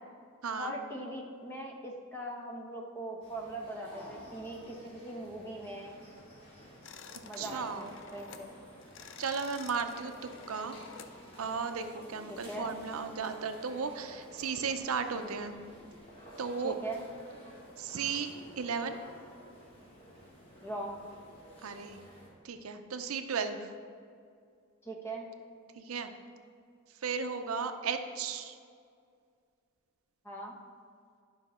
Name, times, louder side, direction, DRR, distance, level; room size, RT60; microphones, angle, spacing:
voice 1, 0.5-6.0 7.2-8.5 12.5-12.7 16.6-17.0 20.6-21.0 24.8-25.3 30.2-30.5, right 1 dB, 10° left, 0 dB, 1.0 m, -40 dB
sound 1, 3.2-22.3, equal, 25° left, 2.3 m, -52 dB
sound 2, 6.8-8.5 8.8-11.2, left 6 dB, 60° left, 0.4 m, -50 dB
voice 2, 7.4-7.9 9.2-10.8 11.4-15.6 16.4-16.8 17.8-18.3 18.6-19.0 21.6-22.0 22.4-23.7 25.7-26.1 27.0-28.6, right 5 dB, 85° right, 8 dB, 0.6 m, -35 dB
11.0 x 5.6 x 4.3 m, 2.2 s
head